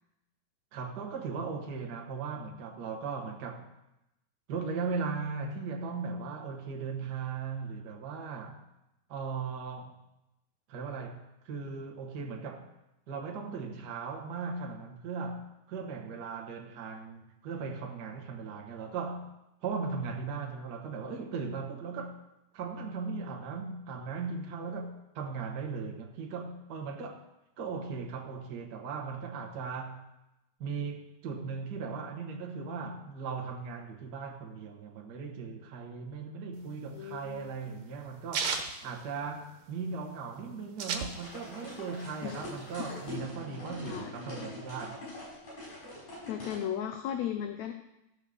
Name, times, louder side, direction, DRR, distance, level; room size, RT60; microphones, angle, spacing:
voice 1, 0.7-3.7 4.5-8.6 9.1-9.9 10.7-12.7 13.1-19.3 19.6-22.2 22.5-27.2 27.6-30.0 30.6-38.6 38.8-45.0, right 5 dB, 70° right, 0.9 m, -38 dB
sound 1, 36.6-39.8 40.1-40.2 40.4-41.6 42.0-43.1, right 5 dB, 85° right, 2.7 m, -35 dB
voice 2, 36.9-37.9 42.2-42.4 42.8-42.9 43.9-44.1 46.3-47.7, left 9 dB, 75° left, 1.7 m, -36 dB
sound 2, 41.1-46.6, left 2 dB, 55° left, 6.7 m, -43 dB
14.5 x 5.1 x 6.8 m
omnidirectional pair, 3.7 m